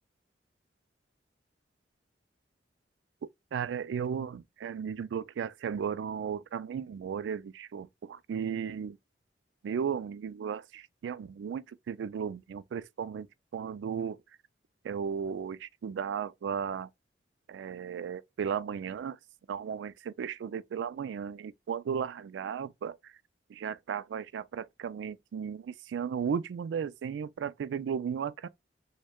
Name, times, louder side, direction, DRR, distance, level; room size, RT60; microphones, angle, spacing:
voice 1, 3.5-9.0 9.6-13.3 13.5-14.2 14.8-16.9 17.5-19.2 19.5-23.2 23.5-28.5, right 7 dB, 80° right, 0.3 m, -35 dB
6.2 x 2.2 x 2.2 m
head